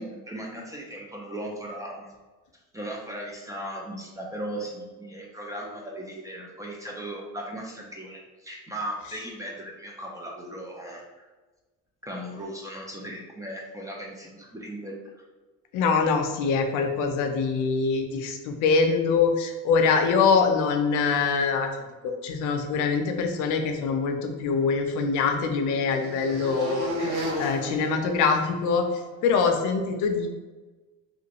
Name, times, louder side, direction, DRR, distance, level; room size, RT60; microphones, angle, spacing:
voice 1, 0.0-2.1 2.7-11.3 12.0-15.2, right 1 dB, 10° right, -2 dB, 0.4 m, -37 dB
voice 2, 15.7-21.7 22.0-28.8 29.2-30.3, left 5 dB, 65° left, 5 dB, 0.5 m, -24 dB
sound 1, 24.3-28.9, equal, 70° right, 0.9 m, -35 dB
3.0 x 2.5 x 2.9 m, 1.2 s
cardioid pair, 125°, 33 cm